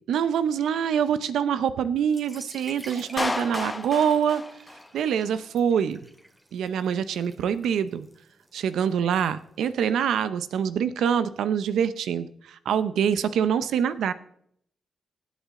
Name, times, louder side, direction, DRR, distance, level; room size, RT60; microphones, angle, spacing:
voice 1, 0.1-4.4 4.9-6.0 6.5-8.1 8.5-14.1, right 8 dB, 90° right, 14 dB, 0.7 m, -25 dB
sound 1, 2.0-9.6, right 1 dB, 15° right, 2.1 m, -49 dB
Clapping, 3.2-5.2, left 2 dB, 20° left, 1.0 m, -31 dB
17.5 x 8.4 x 3.8 m, 0.66 s
cardioid pair, 65°, 0 cm